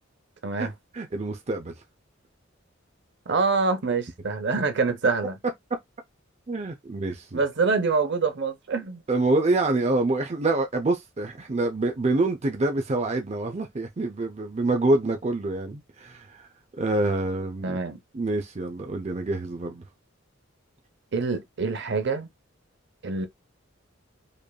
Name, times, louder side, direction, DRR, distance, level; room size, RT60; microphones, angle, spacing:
voice 1, 0.6-1.7 6.5-7.4 9.1-16.5 16.8-17.8 18.1-19.8, right 2 dB, 35° right, 0.5 m, -26 dB
voice 2, 3.3-5.4 7.3-9.0 17.6-18.0 21.1-22.3 23.0-23.3, right 4 dB, 60° right, 0.8 m, -25 dB
5.2 x 2.5 x 2.3 m
head